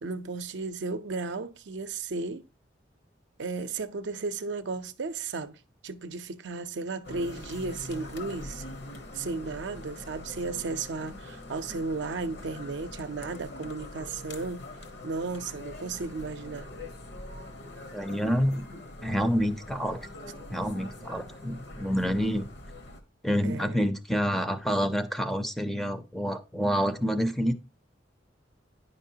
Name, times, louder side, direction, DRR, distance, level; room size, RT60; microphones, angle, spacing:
voice 1, 0.0-2.4 3.4-5.6 5.8-8.7 9.1-14.7 15.0-16.7 23.4-23.8, right 3 dB, 70° right, 0.6 m, -34 dB
sound 1, 7.0-23.0, left 1 dB, 65° left, 1.0 m, -43 dB
voice 2, 17.9-18.7 19.0-20.1 20.5-22.5 23.2-27.5, equal, ahead, 0.5 m, -28 dB
9.5 x 5.3 x 2.7 m
head